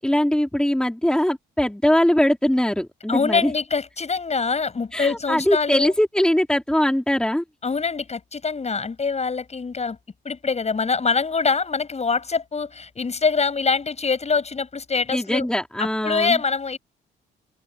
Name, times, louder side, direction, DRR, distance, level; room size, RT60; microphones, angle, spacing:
voice 1, 0.0-3.5 4.9-7.4 15.1-16.4, left 1 dB, 5° left, 3.5 m, -21 dB
voice 2, 3.1-5.9 7.6-10.0 10.2-15.5 16.0-16.8, left 4 dB, 35° left, 7.5 m, -24 dB
open air
cardioid pair, 90°, 20 cm